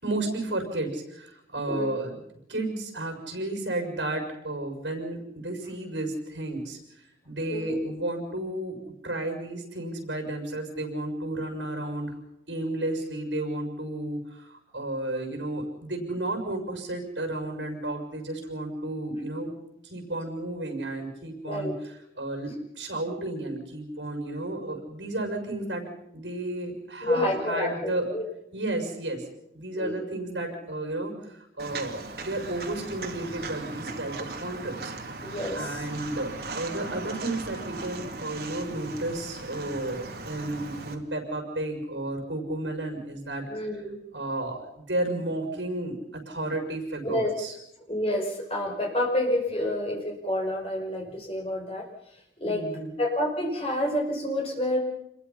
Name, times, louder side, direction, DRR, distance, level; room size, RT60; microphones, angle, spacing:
voice 1, 0.0-2.2 2.5-8.8 9.0-12.1 12.5-19.5 19.8-25.8 26.1-28.1 28.5-29.2 29.5-34.9 35.5-43.8 44.1-47.5 52.4-52.9, right 1 dB, 75° right, 3 dB, 6.4 m, -32 dB
voice 2, 1.7-2.0 7.5-7.8 21.5-21.8 27.0-28.2 29.8-30.0 35.2-35.8 43.5-44.0 47.0-47.3 47.9-51.9 52.4-52.6 53.0-54.8, left 1 dB, 30° left, -1 dB, 5.8 m, -28 dB
Walk footsteps, 31.6-40.9, right 3 dB, 55° right, 2.5 m, -38 dB
27.5 x 22.0 x 5.8 m, 0.83 s
head